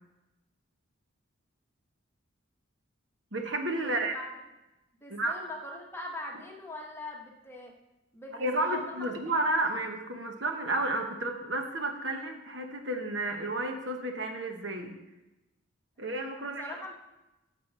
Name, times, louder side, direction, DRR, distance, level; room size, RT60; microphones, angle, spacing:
voice 1, 3.3-4.2 5.1-5.4 8.3-15.0 16.0-16.6, right 2 dB, 60° right, 4 dB, 1.2 m, -31 dB
voice 2, 3.8-4.3 5.0-7.7 8.1-9.1 16.4-16.9, left 1 dB, 10° left, -1 dB, 1.4 m, -41 dB
8.5 x 7.5 x 6.1 m, 0.97 s
head